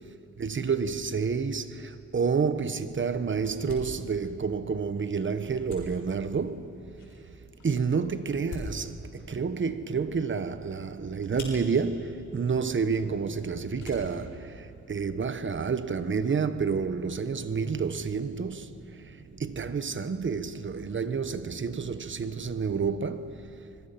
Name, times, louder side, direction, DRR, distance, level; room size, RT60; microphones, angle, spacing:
voice 1, 0.4-6.7 7.6-18.8 19.3-23.4, right 5 dB, 40° right, 1.0 m, -29 dB
sound 1, 2.1-15.7, left 2 dB, 90° left, 6.7 m, -47 dB
25.5 x 21.5 x 5.9 m
cardioid pair, 100°, 29 cm